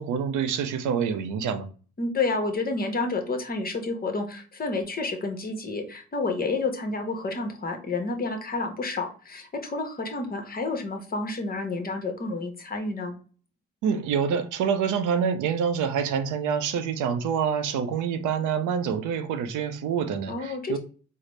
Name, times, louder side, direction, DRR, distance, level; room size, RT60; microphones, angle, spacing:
voice 1, 0.0-1.7 13.8-20.8, right 7 dB, 80° right, 0.5 m, -26 dB
voice 2, 2.0-13.1 20.3-20.8, left 3 dB, 30° left, 0.9 m, -30 dB
4.0 x 2.0 x 3.2 m
cardioid pair, 90°, 30 cm